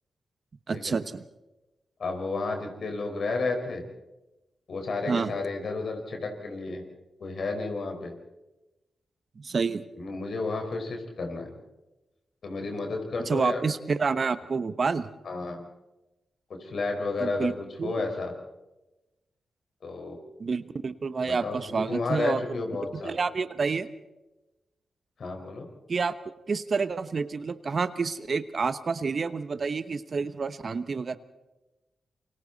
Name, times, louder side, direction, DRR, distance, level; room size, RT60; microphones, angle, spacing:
voice 1, 0.7-1.2 5.1-5.3 9.4-9.8 13.3-15.1 17.2-17.5 17.8-18.0 20.4-22.4 23.0-23.9 25.9-26.1 26.5-31.2, right 4 dB, 55° right, 13 dB, 1.1 m, -28 dB
voice 2, 2.0-3.8 4.7-6.8 7.2-8.1 10.0-11.6 12.4-13.6 15.2-15.6 16.5-18.3 19.8-20.2 21.2-23.2 25.2-25.7, left 3 dB, 65° left, 3 dB, 4.8 m, -32 dB
28.5 x 24.0 x 4.1 m, 1.0 s
supercardioid pair, 45°, 0 cm